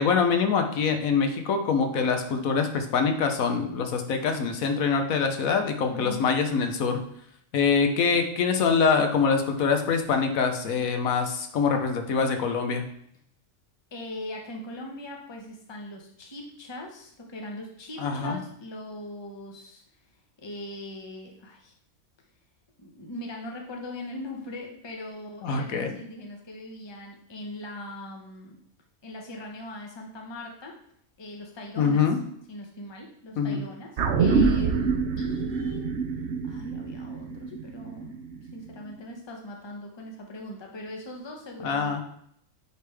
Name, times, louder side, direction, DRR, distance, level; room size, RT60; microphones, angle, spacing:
voice 1, 0.0-7.0 7.5-12.9 18.0-18.4 25.4-26.0 31.8-32.2 33.4-33.6 41.6-42.0, left 5 dB, 80° left, 5 dB, 1.2 m, -24 dB
voice 2, 5.9-6.3 13.9-19.8 20.1-21.7 22.8-28.6 29.0-30.7 31.2-32.0 32.5-35.9 36.4-38.2 38.4-42.0, left 1 dB, 25° left, 0 dB, 0.8 m, -40 dB
sound 1, 34.0-38.6 38.9-39.0, right 5 dB, 60° right, 0.9 m, -26 dB
8.8 x 3.3 x 3.4 m, 0.69 s
omnidirectional pair, 1.4 m